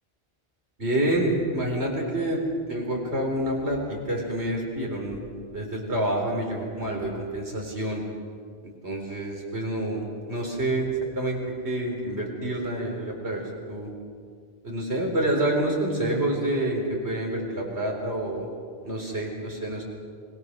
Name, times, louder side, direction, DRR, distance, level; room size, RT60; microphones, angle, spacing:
voice 1, 0.8-2.4 2.7-5.2 5.5-8.0 8.8-10.9 11.2-13.9 14.6-18.5 18.8-19.8, right 1 dB, 85° right, 0 dB, 4.7 m, -28 dB
25.5 x 20.5 x 6.5 m, 2.2 s
omnidirectional pair, 1.1 m